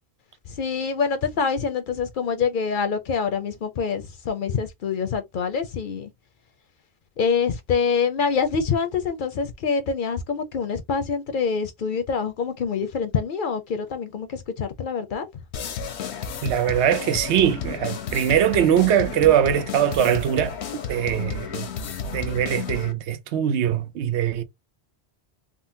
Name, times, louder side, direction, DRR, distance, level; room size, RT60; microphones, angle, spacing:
voice 1, 0.5-6.1 7.2-15.3, left 5 dB, 60° left, 0.6 m, -25 dB
sound 1, 15.5-22.9, left 6 dB, 80° left, 0.9 m, -32 dB
voice 2, 16.4-20.6 20.9-21.7 22.1-24.4, right 10 dB, 85° right, 0.9 m, -21 dB
3.8 x 2.0 x 2.6 m
omnidirectional pair, 1.1 m